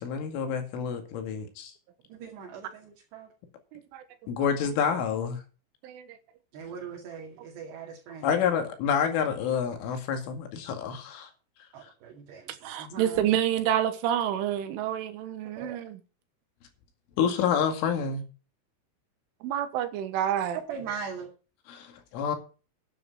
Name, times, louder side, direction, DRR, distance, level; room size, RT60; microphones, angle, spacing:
voice 1, 0.0-1.7 4.3-5.4 8.2-11.3 17.2-18.2 21.7-22.4, left 7 dB, 75° left, 5 dB, 4.6 m, -28 dB
voice 2, 2.1-3.3 6.5-8.4 11.7-13.2 15.6-15.8 20.7-21.3, right 6 dB, 60° right, -1 dB, 4.4 m, -40 dB
voice 3, 3.7-4.0 4.4-4.5 5.8-6.2 12.6-16.0 19.4-20.6, right 10 dB, 75° right, 10 dB, 3.7 m, -28 dB
10.5 x 10.5 x 4.7 m, 0.34 s
omnidirectional pair, 5.8 m